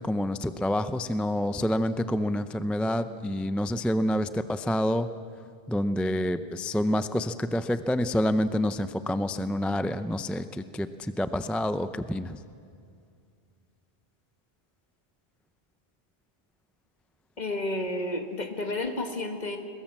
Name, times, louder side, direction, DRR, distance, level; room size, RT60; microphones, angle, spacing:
voice 1, 0.0-5.1 5.7-12.4, left 1 dB, ahead, 11 dB, 0.4 m, -28 dB
voice 2, 17.4-19.6, left 2 dB, 45° left, 4 dB, 1.9 m, -31 dB
22.0 x 21.0 x 7.4 m, 2.3 s
omnidirectional pair, 1.0 m